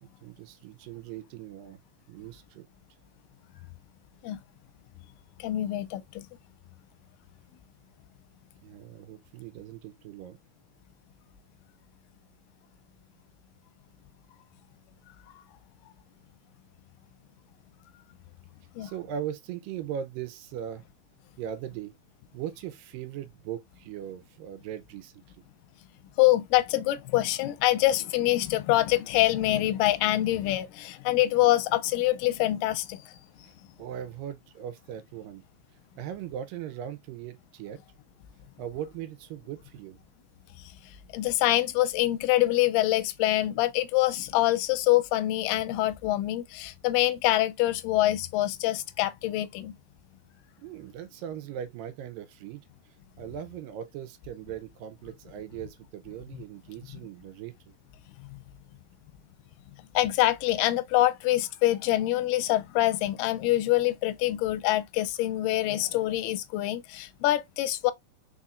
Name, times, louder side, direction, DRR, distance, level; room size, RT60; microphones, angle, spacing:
voice 1, 0.0-1.8 2.1-2.7 8.6-10.4 18.8-20.8 21.4-21.9 22.3-25.2 33.4-35.5 36.0-37.8 38.6-40.0 50.6-52.6 53.2-57.7, right 10 dB, 80° right, 2.3 m, -39 dB
voice 2, 5.4-6.3 18.8-18.9 26.2-33.1 41.1-49.7 59.9-67.9, left 15 dB, 80° left, 2.0 m, -25 dB
4.9 x 4.2 x 2.4 m
omnidirectional pair, 4.1 m